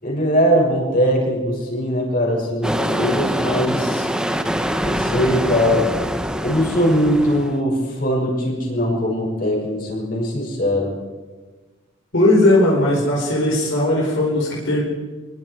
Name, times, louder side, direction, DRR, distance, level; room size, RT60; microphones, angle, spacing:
voice 1, 0.0-4.1 4.8-5.9 6.4-10.9, equal, 45° left, -2 dB, 6.8 m, -20 dB
sound 1, 2.6-7.6, equal, 5° right, 1.1 m, -24 dB
voice 2, 12.1-14.8, left 1 dB, 70° left, -3 dB, 5.0 m, -17 dB
25.5 x 23.0 x 4.9 m, 1.3 s
head